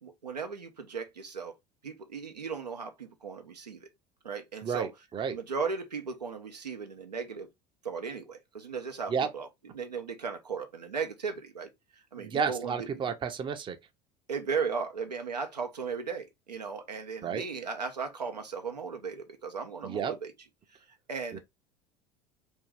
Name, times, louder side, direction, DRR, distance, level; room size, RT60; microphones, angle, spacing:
voice 1, 0.0-1.5 1.8-3.9 4.2-4.9 5.3-7.5 7.8-9.5 9.7-13.1 14.3-20.3 20.7-20.8 21.1-21.4, right 5 dB, 90° right, 0.5 m, -36 dB
voice 2, 4.6-5.4 9.1-9.3 12.2-13.8 17.2-17.4 19.8-20.1 21.3-21.4, right 6 dB, 25° right, 0.5 m, -31 dB
2.6 x 2.3 x 3.2 m
figure-of-eight pair, 70°, 20 cm